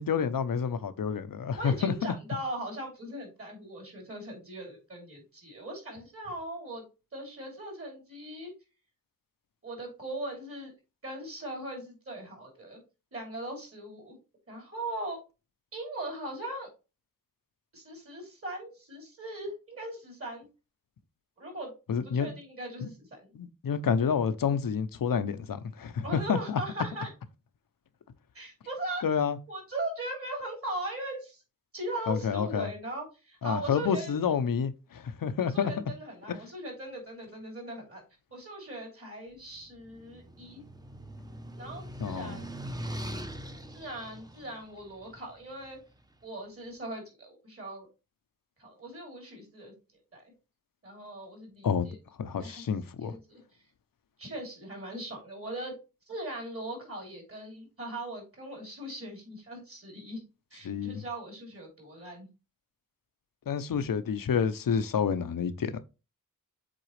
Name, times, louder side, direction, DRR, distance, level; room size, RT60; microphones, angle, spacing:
voice 1, 0.0-2.1 21.9-22.4 23.3-26.6 29.0-29.4 32.1-32.7 33.4-35.7 36.3-36.4 42.0-42.4 51.6-53.2 60.6-61.0 63.5-65.8, left 7 dB, 90° left, 0.7 m, -29 dB
voice 2, 1.6-6.8 7.1-8.5 9.6-10.7 11.0-12.8 13.1-14.2 14.5-15.2 15.7-16.7 17.7-20.5 21.4-21.7 22.0-23.3 26.0-27.1 28.3-29.0 29.5-31.4 31.7-34.1 35.4-38.0 38.3-40.6 41.6-42.6 43.7-45.8 46.2-47.9 48.6-49.7 50.1-50.2 50.8-52.0 52.4-52.6 53.0-53.4 54.2-55.7 56.1-60.2 60.5-62.3, right 1 dB, 45° right, 3.2 m, -39 dB
sound 1, 39.5-45.8, right 1 dB, 10° right, 0.7 m, -42 dB
7.6 x 4.0 x 3.2 m
wide cardioid pair, 120°, 33 cm